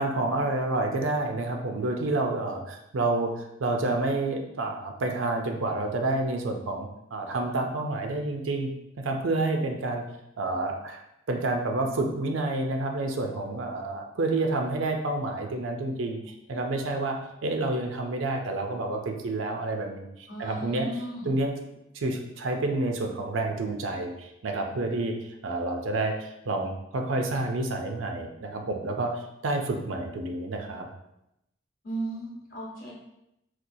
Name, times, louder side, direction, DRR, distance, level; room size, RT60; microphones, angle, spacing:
voice 1, 0.0-8.7 9.0-10.0 10.4-20.9 21.2-21.5 21.9-30.9, right 2 dB, 85° right, 3 dB, 0.5 m, -29 dB
voice 2, 20.3-21.3 31.8-32.9, right 1 dB, 45° left, -3 dB, 0.9 m, -35 dB
4.2 x 2.3 x 2.7 m, 0.84 s
head